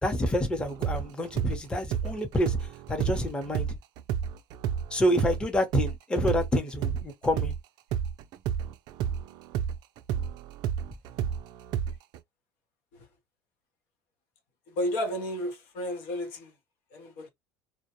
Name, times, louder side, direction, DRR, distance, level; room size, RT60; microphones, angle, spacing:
voice 1, 0.0-2.6 2.9-3.7 4.9-7.5, equal, 10° left, 0.7 m, -27 dB
sound 1, 0.6-7.6 7.9-12.2, right 8 dB, 55° right, 0.3 m, -31 dB
voice 2, 14.8-16.5 16.9-17.3, equal, 75° left, 0.7 m, -32 dB
2.1 x 2.0 x 2.9 m
supercardioid pair, 110°, 8 cm